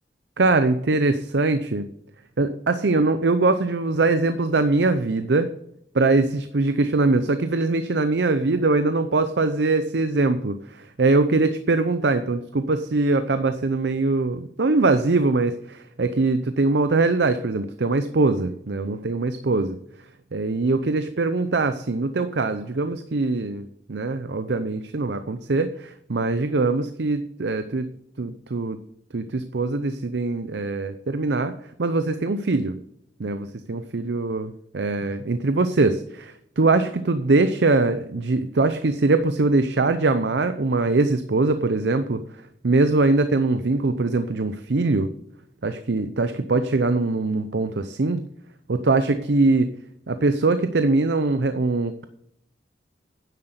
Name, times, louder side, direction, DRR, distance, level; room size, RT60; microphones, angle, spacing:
voice 1, 0.4-1.9 2.4-5.5 5.9-19.8 20.3-27.9 28.2-28.8 29.1-31.5 31.8-32.8 33.2-42.2 42.6-45.1 45.6-48.2 48.7-49.7 50.1-52.1, right 3 dB, 65° right, 10 dB, 0.6 m, -22 dB
10.0 x 7.7 x 8.0 m, 0.76 s
head